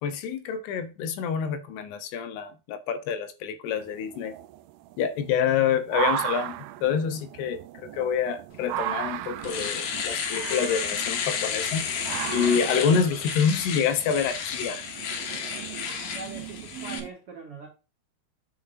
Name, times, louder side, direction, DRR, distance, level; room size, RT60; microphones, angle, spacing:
voice 1, 0.0-4.3 5.0-6.6 6.8-11.9 12.3-14.8, left 7 dB, 85° left, 3.0 m, -27 dB
sound 1, 3.7-17.1, right 13 dB, 80° right, 2.2 m, -36 dB
Domestic sounds home sounds, 8.8-8.9 9.3-17.0, left 7 dB, 65° left, 2.2 m, -32 dB
voice 2, 15.8-17.7, right 4 dB, 45° right, 2.3 m, -42 dB
8.6 x 7.2 x 2.6 m
omnidirectional pair, 4.7 m